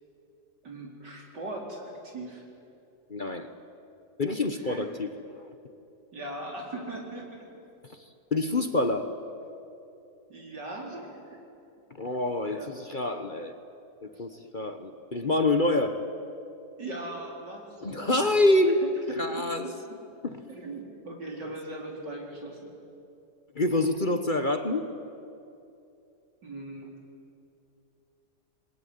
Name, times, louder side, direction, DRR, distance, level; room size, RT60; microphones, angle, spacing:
voice 1, 0.6-2.4 4.6-4.8 6.1-7.5 10.3-11.4 12.5-12.7 14.1-14.3 16.8-19.5 20.5-22.7 26.4-27.0, right 2 dB, 85° right, 0 dB, 4.9 m, -39 dB
voice 2, 3.1-3.5 4.2-5.5 7.9-9.1 11.9-13.5 14.0-16.0 17.8-18.8 19.1-19.7 20.2-20.4 21.4-21.5 23.5-24.9, left 2 dB, 35° left, 7 dB, 1.1 m, -27 dB
27.5 x 21.0 x 9.6 m, 2.7 s
omnidirectional pair, 1.8 m